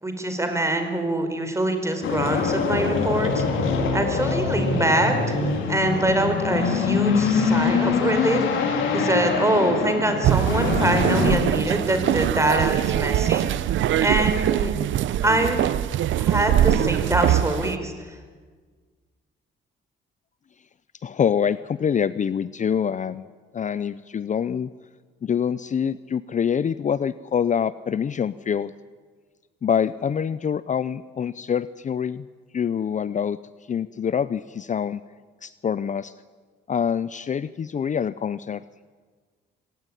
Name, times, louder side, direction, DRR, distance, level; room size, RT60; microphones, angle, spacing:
voice 1, 0.0-3.4 3.9-5.4 5.7-8.4 8.9-13.5 14.0-14.7 15.2-15.6 16.1-17.9, right 1 dB, 15° right, 6 dB, 4.8 m, -24 dB
sound 1, 2.0-11.4, left 5 dB, 80° left, 4.2 m, -24 dB
sound 2, 10.2-17.8, right 12 dB, 75° right, 0.8 m, -22 dB
voice 2, 21.0-23.3 23.5-24.7 25.2-28.7 29.6-32.3 32.5-33.4 33.7-35.0 35.4-36.1 36.7-38.6, left 7 dB, 40° left, 16 dB, 0.6 m, -25 dB
25.0 x 16.5 x 10.0 m, 1.5 s
cardioid pair, 90°, 20 cm